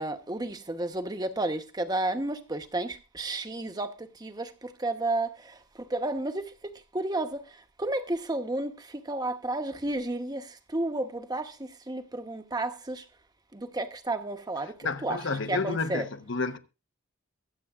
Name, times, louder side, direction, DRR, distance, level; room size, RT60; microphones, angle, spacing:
voice 1, 0.0-13.1 13.5-15.2 15.5-16.0, right 2 dB, 20° right, 0.9 m, -32 dB
voice 2, 14.8-16.6, left 4 dB, 60° left, 1.0 m, -30 dB
23.0 x 8.3 x 2.4 m
head